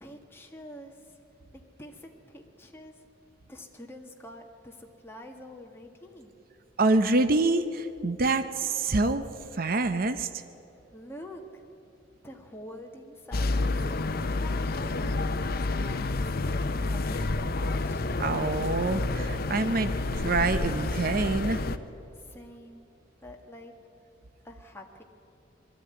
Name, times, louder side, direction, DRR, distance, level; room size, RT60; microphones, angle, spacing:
voice 1, 0.0-1.2 1.5-3.0 3.5-6.3 10.9-11.7 12.2-14.0 14.2-15.1 15.4-18.0 22.1-22.9 23.2-23.7 24.4-25.0, left 1 dB, 15° left, 1 dB, 1.7 m, -47 dB
voice 2, 6.8-10.4 18.2-21.6, right 3 dB, 50° right, 10 dB, 0.7 m, -26 dB
sound 1, 13.3-21.8, left 2 dB, 55° left, 0.7 m, -29 dB
21.0 x 13.0 x 9.6 m, 2.7 s
head